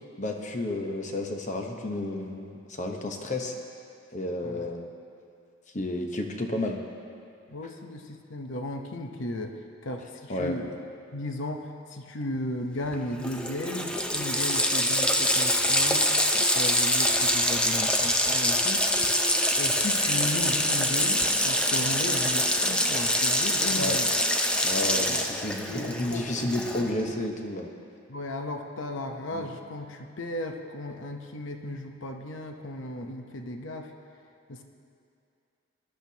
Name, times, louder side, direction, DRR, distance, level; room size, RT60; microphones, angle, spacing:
voice 1, 0.2-3.5 4.1-4.9 5.7-6.8 10.3-10.6 23.7-24.0 24.6-27.7 29.3-29.4, left 1 dB, 35° left, 3 dB, 0.9 m, -31 dB
voice 2, 7.5-10.8 11.1-18.9 19.6-24.1 25.1-25.2 25.7-27.0 28.1-33.9 34.5-34.6, left 1 dB, 60° left, 4 dB, 0.8 m, -35 dB
Water tap faucet, 12.9-13.0 13.2-27.0, left 1 dB, 5° left, 0.5 m, -25 dB
19.5 x 12.0 x 2.8 m, 2.5 s
head